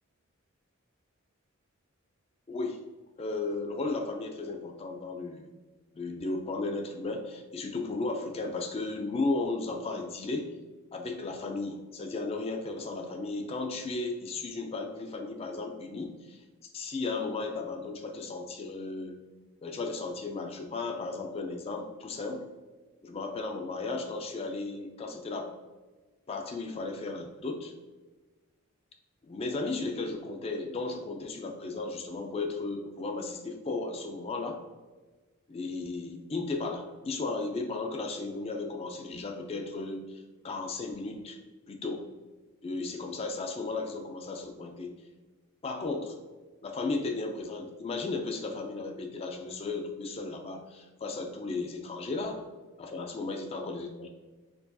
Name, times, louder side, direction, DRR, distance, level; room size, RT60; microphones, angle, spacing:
voice 1, 2.5-2.8 3.2-5.5 6.0-10.5 10.9-19.2 19.6-22.4 23.0-25.5 26.3-27.7 29.2-34.6 35.5-41.4 41.7-42.1 42.6-44.9 45.6-46.2 46.6-52.5 52.8-54.1, left 3 dB, 30° left, 4 dB, 0.3 m, -35 dB
4.4 x 2.7 x 2.3 m, 1.3 s
head